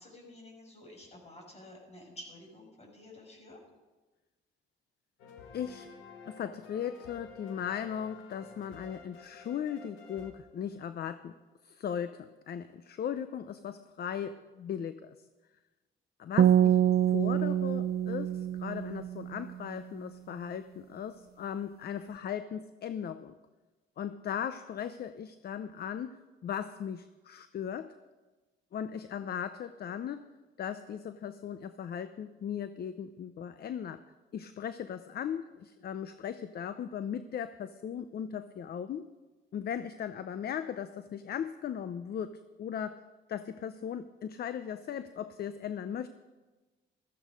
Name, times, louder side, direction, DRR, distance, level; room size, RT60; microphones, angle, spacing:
voice 1, 0.0-3.6, left 1 dB, 35° left, 1 dB, 5.9 m, -51 dB
sound 1, 5.2-11.1, left 4 dB, 85° left, 2.0 m, -51 dB
voice 2, 5.5-5.9 6.3-11.4 11.6-15.2 16.2-16.8 17.1-23.4 24.0-27.9 28.7-30.3 30.6-34.0 34.3-39.1 39.5-43.0 43.3-46.1, left 8 dB, 55° left, 12 dB, 0.7 m, -38 dB
sound 2, 16.4-19.6, right 10 dB, 50° right, 0.5 m, -26 dB
14.5 x 14.0 x 5.2 m, 1.2 s
cardioid pair, 90°, 20 cm